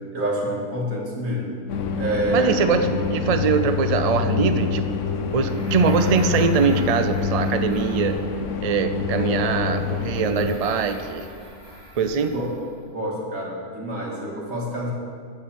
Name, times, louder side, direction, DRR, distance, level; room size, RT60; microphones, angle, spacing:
voice 1, 0.1-1.5 2.0-2.6 12.3-12.5 12.9-14.9, equal, 70° right, -4 dB, 2.4 m, -27 dB
sound 1, 1.7-10.6, left 6 dB, 65° left, 1.1 m, -26 dB
voice 2, 2.3-4.9 5.3-8.2 8.6-11.3 12.0-12.3, right 5 dB, 50° right, 9 dB, 0.4 m, -22 dB
sound 2, 5.3-8.6 9.6-12.8, right 1 dB, 20° left, 2.1 m, -42 dB
13.5 x 5.7 x 6.4 m, 2.2 s
omnidirectional pair, 1.4 m